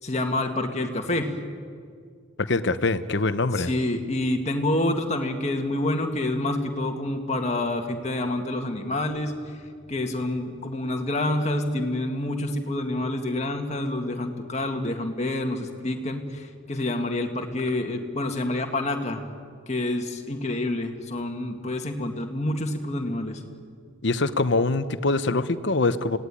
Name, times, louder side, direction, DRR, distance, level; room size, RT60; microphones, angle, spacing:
voice 1, 0.0-1.3 3.5-9.3 9.9-19.3 19.7-23.4, left 1 dB, 30° left, 3 dB, 2.0 m, -27 dB
voice 2, 2.4-3.7 24.0-26.2, left 3 dB, 55° left, 12 dB, 0.9 m, -24 dB
26.0 x 17.5 x 9.9 m, 2.2 s
head